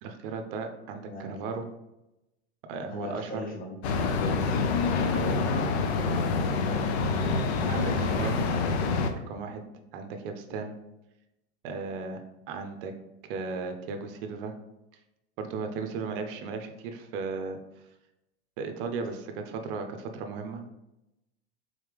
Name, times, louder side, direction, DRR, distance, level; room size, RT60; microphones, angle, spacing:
voice 1, 0.0-1.7 2.7-3.4 5.1-5.4 7.7-8.4 9.1-9.6 9.9-10.7 11.6-12.2 12.5-12.9 13.2-14.5 15.4-17.6 18.6-20.6, right 4 dB, 55° right, 6 dB, 0.6 m, -35 dB
voice 2, 1.0-1.3 2.9-4.6 4.9-7.0 8.5-9.0, equal, 25° left, -1 dB, 0.9 m, -39 dB
sound 1, 3.8-9.1, left 4 dB, 70° left, 0.6 m, -26 dB
3.9 x 3.2 x 3.4 m, 0.93 s
hypercardioid pair, 110°, 34 cm